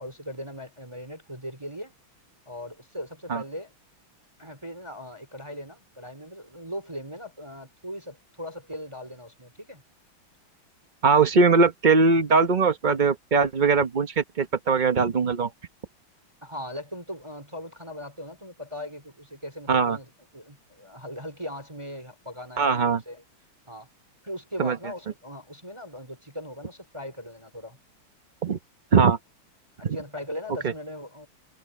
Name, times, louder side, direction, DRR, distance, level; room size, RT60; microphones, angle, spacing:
voice 1, 0.0-1.9 2.5-3.7 4.4-9.8 16.4-22.7 23.1-23.2 23.7-23.9 24.2-27.8 29.8-31.3, equal, 10° right, 3.7 m, -39 dB
voice 2, 11.0-15.5 19.7-20.0 22.6-23.0 24.6-24.8 28.4-28.6 28.9-29.2 29.8-30.0 30.6-30.7, right 4 dB, 80° right, 0.4 m, -21 dB
omnidirectional pair, 2.4 m